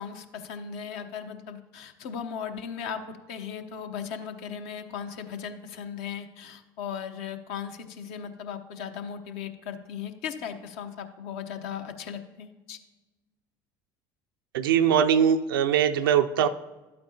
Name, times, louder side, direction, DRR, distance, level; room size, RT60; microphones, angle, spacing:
voice 1, 0.0-12.8, left 7 dB, 65° left, 7 dB, 0.8 m, -37 dB
voice 2, 14.5-16.5, right 8 dB, 80° right, 10 dB, 0.4 m, -21 dB
11.5 x 8.8 x 2.8 m, 1.2 s
hypercardioid pair, 70°, 11 cm